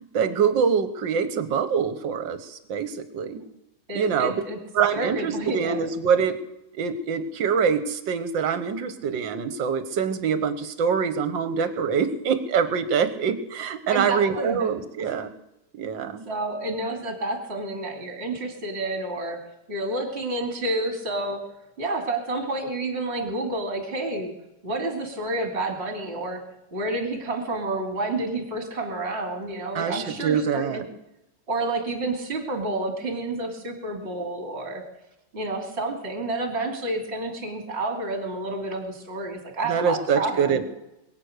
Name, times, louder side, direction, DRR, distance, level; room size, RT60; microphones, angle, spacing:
voice 1, 0.1-3.5 4.0-4.4 4.7-6.4 6.8-15.3 15.7-16.3 29.8-30.8 39.6-40.6, right 6 dB, 65° right, 11 dB, 1.8 m, -25 dB
voice 2, 3.9-4.6 4.9-5.9 13.9-14.7 15.1-15.2 16.3-19.4 19.7-21.4 21.8-24.3 24.6-26.4 26.7-30.8 31.5-34.8 35.3-40.6, right 2 dB, 30° right, 4 dB, 2.7 m, -29 dB
22.0 x 8.5 x 6.5 m, 0.92 s
omnidirectional pair, 2.2 m